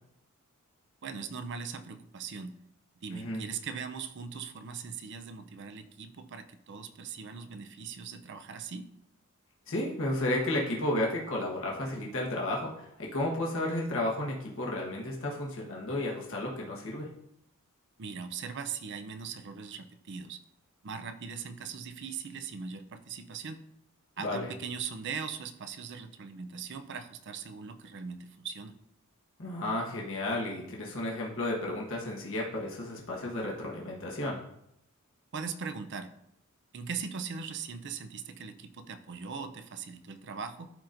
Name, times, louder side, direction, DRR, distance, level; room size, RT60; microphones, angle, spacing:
voice 1, 1.0-2.6 3.0-8.9 18.0-20.4 20.8-23.6 24.2-28.8 35.3-36.1 36.7-40.7, right 6 dB, 55° right, 9 dB, 0.5 m, -40 dB
voice 2, 3.1-3.4 9.7-17.1 24.2-24.5 29.4-34.4, left 1 dB, 65° left, -2 dB, 1.3 m, -33 dB
12.5 x 4.2 x 2.6 m, 0.78 s
head